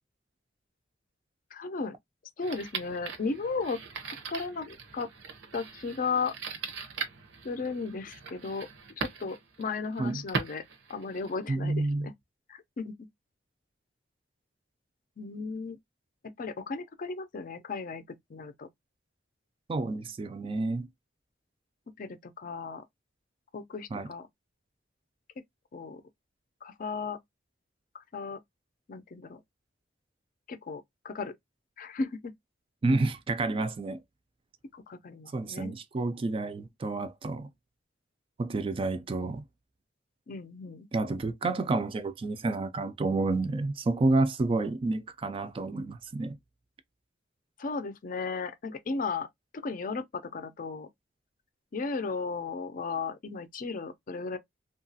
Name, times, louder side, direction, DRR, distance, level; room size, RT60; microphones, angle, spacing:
voice 1, 1.5-2.0 2.4-5.1 5.5-6.4 7.4-8.7 9.0-10.6 10.9-12.1 12.5-12.9 15.2-15.8 16.4-18.7 22.0-22.8 23.5-24.3 25.7-26.0 26.6-27.2 27.9-28.4 28.9-29.4 30.5-31.3 31.8-32.3 34.7-35.8 40.3-40.9 47.6-49.3 49.5-50.9 51.7-54.4, left 4 dB, 50° left, 0.5 m, -35 dB
sound 1, 2.4-11.5, right 5 dB, 85° right, 0.7 m, -40 dB
voice 2, 11.5-12.1 19.7-20.9 23.9-24.1 32.8-34.0 35.3-37.5 38.4-39.4 40.9-46.4, right 3 dB, 30° right, 0.3 m, -29 dB
2.8 x 2.3 x 2.6 m
head